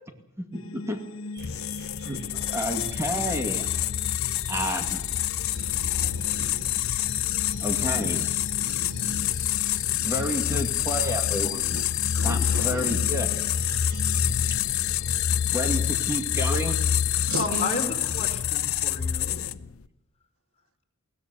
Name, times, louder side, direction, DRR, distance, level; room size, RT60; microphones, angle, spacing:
voice 1, 0.4-1.0 2.0-3.7 4.5-5.0 7.6-8.2 10.0-11.8 12.2-13.3 15.5-16.8, equal, 15° right, 4 dB, 2.2 m, -30 dB
sound 1, 0.5-17.3, left 5 dB, 65° left, 1.3 m, -40 dB
sound 2, 1.3-12.9, right 3 dB, 55° right, 4.6 m, -51 dB
sound 3, 1.4-19.7, left 10 dB, 80° left, 0.7 m, -27 dB
voice 2, 5.5-7.0 8.6-9.4 9.9-10.1 11.7-11.8 12.1-13.1 13.7-14.1 16.6-16.8 17.2-17.8, right 3 dB, 90° right, 13 dB, 1.1 m, -38 dB
voice 3, 7.7-8.3 17.3-19.6, left 3 dB, 30° left, 1 dB, 4.5 m, -34 dB
21.5 x 17.5 x 8.3 m, 0.88 s
head